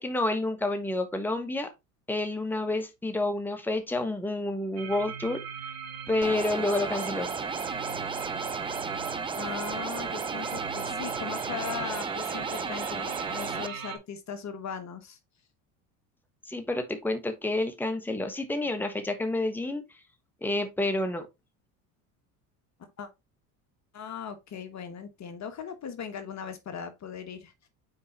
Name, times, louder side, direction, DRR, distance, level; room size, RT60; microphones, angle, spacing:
voice 1, 0.0-1.7 2.1-5.4 6.1-7.3 16.5-19.8 20.4-21.2, left 2 dB, 5° left, 1.3 m, -29 dB
sound 1, 4.8-14.0, right 7 dB, 55° right, 1.9 m, -39 dB
sound 2, 6.2-13.7, right 4 dB, 10° right, 0.5 m, -34 dB
voice 2, 9.3-15.2 23.0-23.1 23.9-27.5, left 7 dB, 40° left, 1.3 m, -39 dB
5.5 x 4.7 x 4.2 m
supercardioid pair, 85°, 43 cm